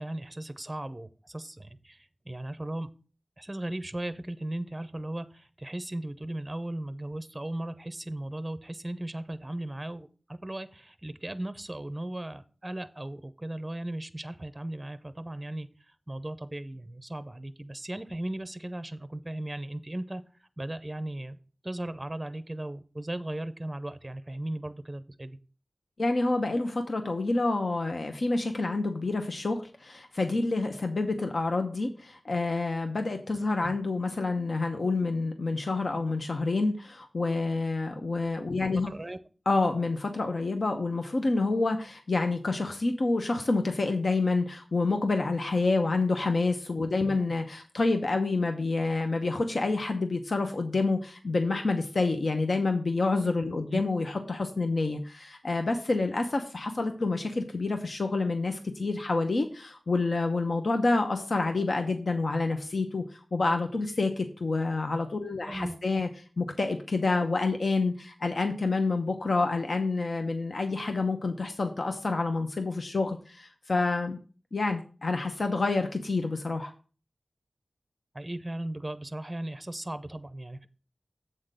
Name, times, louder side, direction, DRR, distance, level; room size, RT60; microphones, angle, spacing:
voice 1, 0.0-2.9 3.4-15.7 16.1-20.2 20.6-21.4 21.6-25.4 33.6-33.8 38.9-39.2 47.1-47.2 53.7-53.8 65.4-66.0 78.1-80.7, right 1 dB, 20° right, 12 dB, 0.6 m, -37 dB
voice 2, 26.0-38.9 39.5-63.0 63.3-66.1 66.4-74.2 74.5-76.7, left 3 dB, 70° left, 5 dB, 0.9 m, -28 dB
7.8 x 3.8 x 6.6 m, 0.38 s
wide cardioid pair, 70°, 0 cm